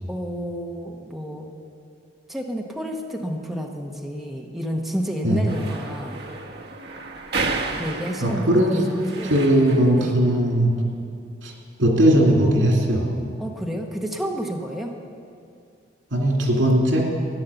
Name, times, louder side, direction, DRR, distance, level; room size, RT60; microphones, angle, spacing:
voice 1, 0.1-1.5 2.3-6.2 7.8-9.3 9.9-10.2 13.4-14.9, equal, ahead, 0 dB, 1.0 m, -30 dB
sound 1, 5.5-10.0, right 3 dB, 60° right, 1.0 m, -32 dB
voice 2, 8.2-8.8 9.2-10.7 11.4-11.5 11.8-13.1 16.1-17.0, right 1 dB, 85° right, 0 dB, 2.7 m, -18 dB
14.0 x 10.5 x 6.9 m, 2.4 s
head